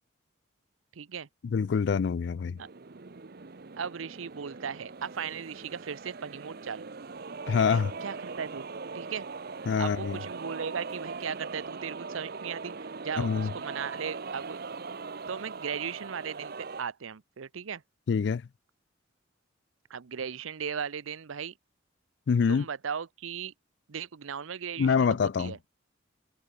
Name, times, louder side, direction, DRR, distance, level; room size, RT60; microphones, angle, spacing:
voice 1, 0.9-1.3 2.6-2.7 3.8-6.9 7.6-8.6 8.9-9.3 9.7-14.6 15.3-17.8 19.9-21.5 22.5-23.5 23.9-25.6, right 7 dB, 90° right, 0.6 m, -37 dB
voice 2, 1.4-2.6 7.5-7.9 9.7-10.2 13.2-13.5 18.1-18.4 22.3-22.7 24.8-25.5, left 6 dB, 60° left, 0.3 m, -25 dB
sound 1, 2.6-16.8, right 4 dB, 50° right, 0.7 m, -40 dB
head